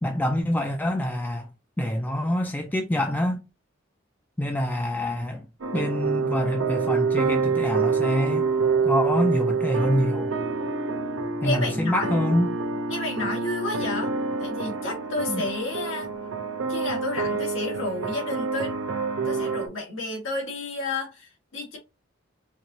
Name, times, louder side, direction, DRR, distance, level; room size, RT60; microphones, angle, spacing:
voice 1, 0.0-1.5 1.8-3.4 4.4-5.4 5.7-8.5 8.8-10.3 11.4-12.5 15.3-15.4, left 1 dB, 10° left, 0.4 m, -26 dB
sound 1, 5.6-19.7, right 4 dB, 85° right, 0.6 m, -27 dB
voice 2, 11.4-12.1 12.9-14.1 14.4-16.1 16.7-18.7 19.3-21.8, left 2 dB, 80° left, 1.8 m, -31 dB
4.5 x 2.8 x 2.7 m
head